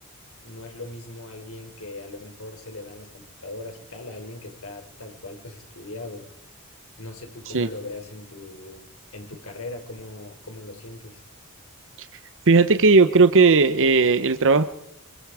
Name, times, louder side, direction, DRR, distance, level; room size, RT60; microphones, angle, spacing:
voice 1, 0.4-6.3 7.0-11.2, left 2 dB, 65° left, 3 dB, 4.6 m, -39 dB
voice 2, 12.5-14.6, right 4 dB, 60° right, 10 dB, 0.9 m, -16 dB
26.0 x 25.0 x 4.9 m, 0.75 s
head